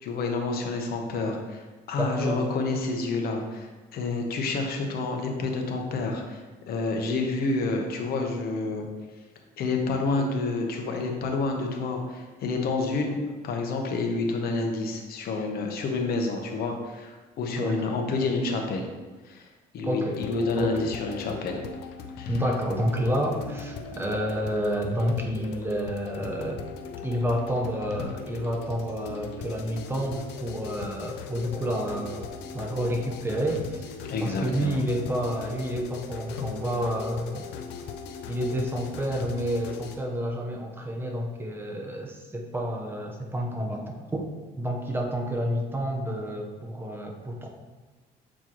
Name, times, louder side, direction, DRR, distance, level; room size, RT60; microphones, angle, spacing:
voice 1, 0.0-8.9 9.6-18.9 19.2-19.5 19.7-21.6 22.2-22.3 34.0-34.8, left 3 dB, 65° left, 3 dB, 1.0 m, -29 dB
voice 2, 2.0-2.4 10.1-10.4 17.5-18.0 19.8-20.2 20.6-20.8 22.3-26.6 27.0-33.9 34.2-37.5 38.3-44.3 44.6-47.5, equal, 15° right, 1 dB, 0.9 m, -29 dB
sound 1, 20.1-40.0, left 6 dB, 90° left, 0.6 m, -39 dB
7.3 x 4.4 x 3.0 m, 1.3 s
cardioid pair, 110°, 17 cm